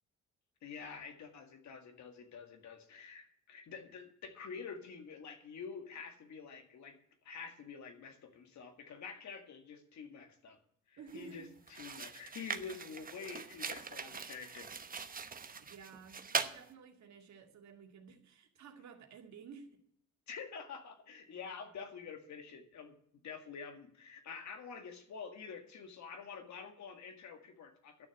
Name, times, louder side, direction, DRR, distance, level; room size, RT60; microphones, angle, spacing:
voice 1, 0.6-7.0 7.2-10.6 10.9-14.7 20.3-22.9 23.2-28.1, left 5 dB, 65° left, 6 dB, 2.0 m, -48 dB
voice 2, 11.0-11.5 15.6-19.8, right 6 dB, 65° right, 3 dB, 2.2 m, -53 dB
sound 1, 11.1-11.3 11.7-16.6, right 5 dB, 30° right, 1.0 m, -41 dB
11.5 x 6.7 x 8.3 m, 0.68 s
cardioid pair, 90°, 30 cm